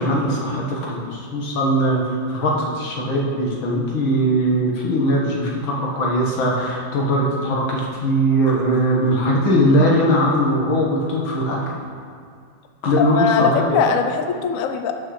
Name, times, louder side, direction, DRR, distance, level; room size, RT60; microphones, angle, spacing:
voice 1, 0.0-2.0 2.3-11.6 12.8-13.8, equal, 90° left, -3 dB, 2.2 m, -20 dB
voice 2, 13.0-15.0, left 6 dB, 70° left, 6 dB, 0.8 m, -21 dB
12.0 x 6.3 x 3.2 m, 2.3 s
omnidirectional pair, 2.1 m